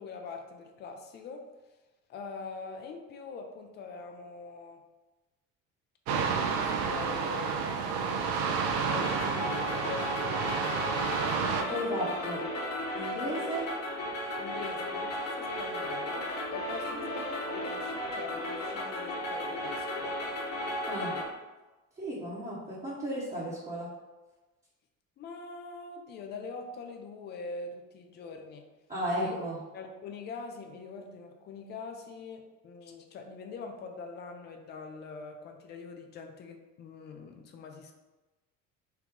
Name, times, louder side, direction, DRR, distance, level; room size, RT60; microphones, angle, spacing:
voice 1, 0.0-1.5 2.1-4.8 6.1-8.2 9.3-10.2 14.4-16.2 16.5-20.1 25.2-28.7 29.1-29.4 29.7-38.0, left 4 dB, 25° left, 4 dB, 0.5 m, -43 dB
sound 1, 6.1-11.6, right 5 dB, 50° right, 0.5 m, -30 dB
sound 2, 8.4-21.2, left 1 dB, 70° left, 0.7 m, -35 dB
voice 2, 11.5-12.4 12.9-13.7 20.9-21.2 22.0-23.9 28.9-29.6, equal, 20° right, -8 dB, 0.9 m, -34 dB
3.3 x 2.3 x 3.5 m, 1.1 s
figure-of-eight pair, 55°, 39 cm